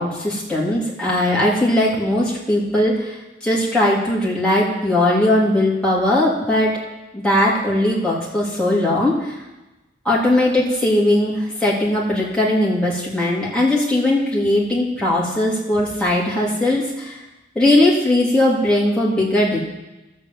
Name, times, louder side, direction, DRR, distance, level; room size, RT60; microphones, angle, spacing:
voice 1, 0.0-3.2 3.4-6.8 7.1-9.3 10.0-17.2 17.5-19.6, left 1 dB, 5° left, -6 dB, 2.9 m, -19 dB
11.5 x 7.6 x 7.7 m, 1.0 s
head